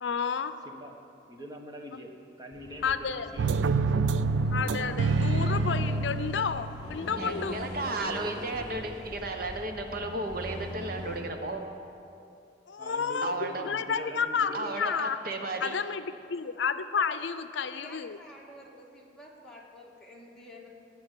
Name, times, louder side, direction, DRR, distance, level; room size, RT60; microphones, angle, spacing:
voice 1, 0.0-0.5 2.8-3.3 4.5-7.7 12.7-15.2 15.6-18.2, left 6 dB, 80° left, 11 dB, 0.5 m, -31 dB
voice 2, 0.6-1.0 1.3-4.0 7.9-8.5 12.8-14.7, equal, 20° right, 2 dB, 1.2 m, -44 dB
Accelerating revving vroom, 2.5-11.2, left 1 dB, 25° left, 4.2 m, -42 dB
sound 1, 3.4-7.0, right 3 dB, 85° right, 0.3 m, -27 dB
voice 3, 7.1-11.6 13.2-13.6 14.5-15.7, right 2 dB, 55° right, 4 dB, 1.0 m, -34 dB
voice 4, 14.6-15.1 16.9-17.2 17.6-20.7, left 1 dB, 5° left, -4 dB, 1.9 m, -49 dB
18.0 x 6.0 x 8.2 m, 2.6 s
head